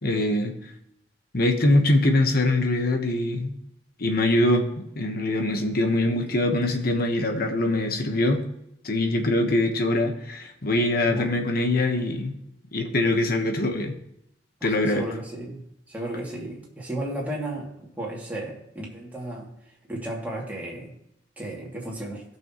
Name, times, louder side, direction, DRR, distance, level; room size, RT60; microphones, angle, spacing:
voice 1, 0.0-0.5 1.3-3.5 4.0-8.4 8.8-12.3 12.7-13.9 14.6-15.1, left 1 dB, 55° left, 5 dB, 1.3 m, -23 dB
voice 2, 14.6-15.6 15.9-19.5 19.9-20.9 21.4-22.2, right 1 dB, 10° right, -4 dB, 2.6 m, -34 dB
17.0 x 6.3 x 3.1 m, 0.80 s
head